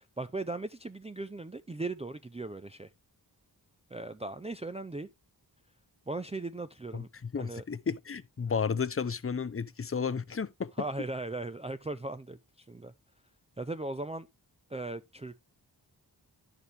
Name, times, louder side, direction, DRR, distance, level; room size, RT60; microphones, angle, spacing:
voice 1, 0.0-2.9 3.9-5.1 6.1-7.1 7.4-7.6 10.8-12.9 13.6-14.3 14.7-15.4, right 2 dB, 15° right, 0.5 m, -38 dB
voice 2, 6.9-10.7, left 6 dB, 35° left, 0.6 m, -33 dB
10.5 x 6.8 x 3.3 m
wide cardioid pair, 105°, 41 cm